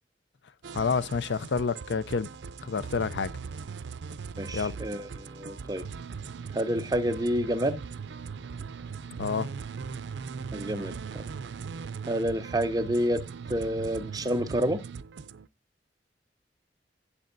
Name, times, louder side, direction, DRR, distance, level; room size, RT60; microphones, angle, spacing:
sound 1, 0.6-15.5, right 5 dB, 90° right, 0.5 m, -39 dB
voice 1, 0.7-2.3 2.6-3.3 4.5-4.7 9.2-9.5, left 5 dB, 85° left, 0.5 m, -28 dB
voice 2, 4.4-5.9 6.5-7.8 10.5-11.2 12.1-14.8, equal, 20° right, 0.7 m, -29 dB
16.5 x 7.0 x 2.6 m
head